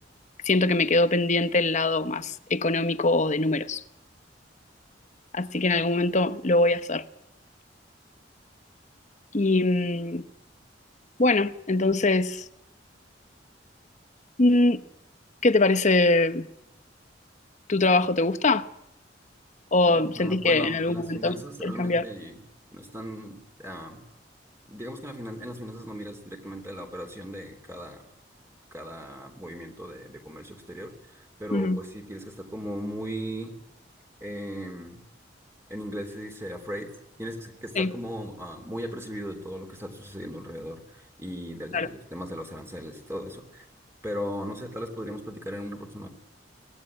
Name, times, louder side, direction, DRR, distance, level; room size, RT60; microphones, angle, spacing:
voice 1, 0.4-3.8 5.3-7.0 9.3-10.2 11.2-12.4 14.4-14.8 15.4-16.5 17.7-18.7 19.7-22.0 31.5-31.8 37.8-37.9 41.7-41.9, left 2 dB, 40° left, 1.0 m, -23 dB
voice 2, 19.9-22.4 22.7-24.0 24.7-28.0 28.7-33.5 34.2-35.0 35.7-36.9 37.2-43.6 44.0-46.1, equal, 15° right, 3.2 m, -37 dB
23.0 x 18.0 x 9.7 m
head